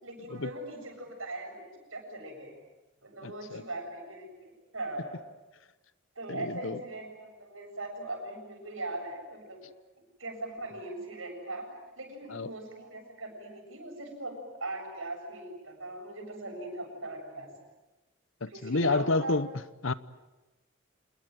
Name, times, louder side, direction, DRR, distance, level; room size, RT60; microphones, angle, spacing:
voice 1, 0.0-2.5 3.0-5.2 6.2-9.6 10.2-11.7 12.0-17.5 18.5-19.4, right 2 dB, 80° right, 7.4 m, -40 dB
voice 2, 3.2-3.6 6.3-6.8 12.3-12.5 18.4-19.5 19.8-19.9, left 3 dB, 75° left, 0.9 m, -29 dB
27.0 x 21.0 x 9.3 m
head